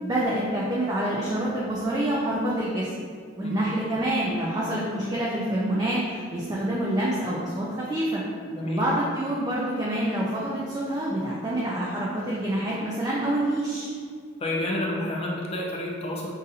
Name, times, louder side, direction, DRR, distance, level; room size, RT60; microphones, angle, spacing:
voice 1, 0.0-2.9 3.4-8.2 8.6-13.9, right 1 dB, 20° right, -5 dB, 0.4 m, -27 dB
voice 2, 8.5-8.9 14.4-16.3, left 1 dB, 30° left, -2 dB, 0.6 m, -29 dB
5.4 x 2.6 x 2.6 m, 2.1 s
head